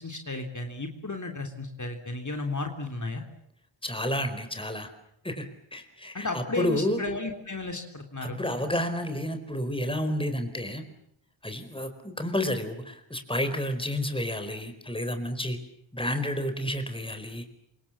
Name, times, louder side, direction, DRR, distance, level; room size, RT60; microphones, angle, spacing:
voice 1, 0.0-3.2 6.1-8.4, left 2 dB, 40° left, 4 dB, 3.3 m, -33 dB
voice 2, 3.8-4.9 5.2-7.0 8.2-10.8 11.4-15.6 15.9-17.4, left 1 dB, 10° left, 8 dB, 4.5 m, -30 dB
28.5 x 26.0 x 7.3 m, 0.73 s
wide cardioid pair, 95°, 47 cm